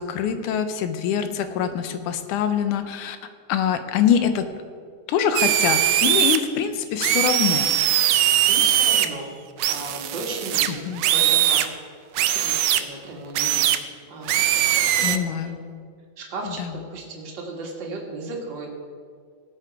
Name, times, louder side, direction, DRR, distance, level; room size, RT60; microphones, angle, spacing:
voice 1, 0.0-3.2 3.5-4.5 5.1-7.7 10.7-11.1 15.0-15.6 16.4-16.8, left 8 dB, 80° left, 9 dB, 2.2 m, -24 dB
sound 1, 5.3-6.4 7.0-9.0 9.6-11.7 12.1-12.8 13.3-13.8 14.2-15.2, right 12 dB, 90° right, 1.4 m, -20 dB
voice 2, 8.5-9.3 9.7-11.7 12.3-13.6 14.1-15.2 16.2-18.7, right 2 dB, 40° right, -1 dB, 2.2 m, -35 dB
18.0 x 7.6 x 4.8 m, 2.1 s
omnidirectional pair, 3.6 m